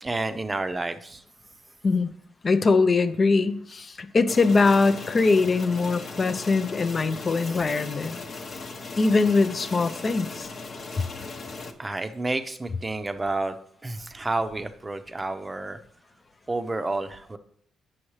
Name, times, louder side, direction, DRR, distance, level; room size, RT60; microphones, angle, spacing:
voice 1, 0.0-1.2 10.9-11.3 11.8-13.6 13.8-15.8 16.5-17.4, right 2 dB, 20° right, 9 dB, 0.7 m, -30 dB
voice 2, 2.4-8.2 9.0-10.5 11.0-11.1, left 3 dB, 35° left, 11 dB, 0.6 m, -22 dB
sound 1, 4.3-11.7, left 3 dB, 50° left, 0.9 m, -38 dB
8.4 x 6.3 x 3.2 m, 0.64 s
cardioid pair, 90°, 0 cm